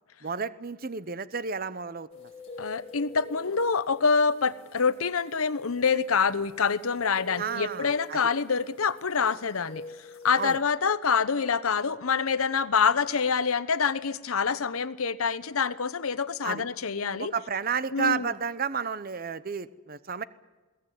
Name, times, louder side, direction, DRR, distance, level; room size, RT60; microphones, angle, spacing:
voice 1, 0.2-2.3 7.4-8.2 10.4-10.6 16.4-16.6 17.2-20.2, right 6 dB, 45° right, 16 dB, 0.8 m, -32 dB
sound 1, 2.1-10.6, right 1 dB, 30° left, 5.8 m, -46 dB
voice 2, 2.6-9.8 10.2-17.3 17.9-18.3, left 5 dB, 85° left, 13 dB, 0.9 m, -26 dB
21.5 x 17.0 x 9.3 m, 1.3 s
head